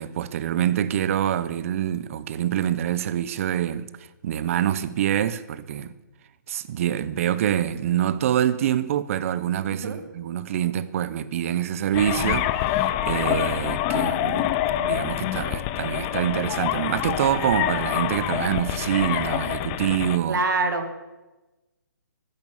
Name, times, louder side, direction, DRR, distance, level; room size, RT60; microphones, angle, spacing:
voice 1, 0.0-3.9 4.2-5.9 6.5-20.4, right 10 dB, 45° right, 0.9 m, -26 dB
sound 1, 11.9-20.2, left 13 dB, 25° left, 0.6 m, -26 dB
voice 2, 20.3-21.0, right 3 dB, 70° right, 2.4 m, -25 dB
14.5 x 11.0 x 7.3 m
hypercardioid pair, 150°, 11 cm